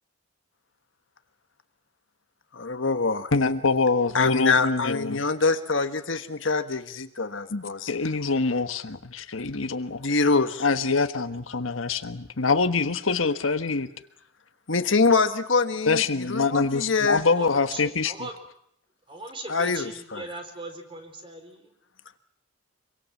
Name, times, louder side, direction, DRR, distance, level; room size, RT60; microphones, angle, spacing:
voice 1, 2.5-3.6 4.1-7.8 10.0-10.7 14.7-17.2 19.5-20.3, left 4 dB, 70° left, 8 dB, 1.5 m, -25 dB
voice 2, 3.3-5.2 7.5-10.1 10.6-13.9 15.9-18.3, left 4 dB, 90° left, 9 dB, 1.4 m, -25 dB
voice 3, 17.2-18.3 19.1-21.7, right 2 dB, 25° right, 5 dB, 4.2 m, -39 dB
26.0 x 23.5 x 7.4 m, 0.69 s
head